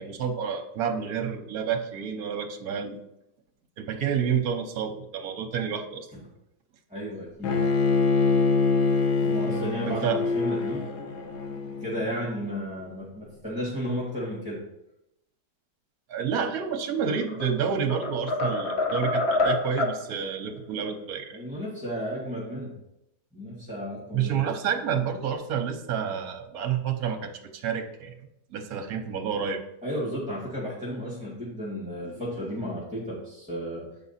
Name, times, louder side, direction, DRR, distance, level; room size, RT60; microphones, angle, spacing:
voice 1, 0.0-3.0 3.8-6.1 9.8-10.2 16.1-21.4 24.1-28.1 28.5-29.6, right 7 dB, 60° right, 5 dB, 1.2 m, -29 dB
voice 2, 6.9-7.6 9.2-10.9 11.6-14.6 21.3-22.7 23.3-24.3 29.8-33.9, equal, 5° right, -6 dB, 1.7 m, -33 dB
Bowed string instrument, 7.4-12.5, left 4 dB, 80° left, 1.5 m, -25 dB
sound 1, 17.0-17.5 17.9-20.0, left 2 dB, 45° left, 1.0 m, -26 dB
7.5 x 4.8 x 4.2 m, 0.84 s
omnidirectional pair, 2.0 m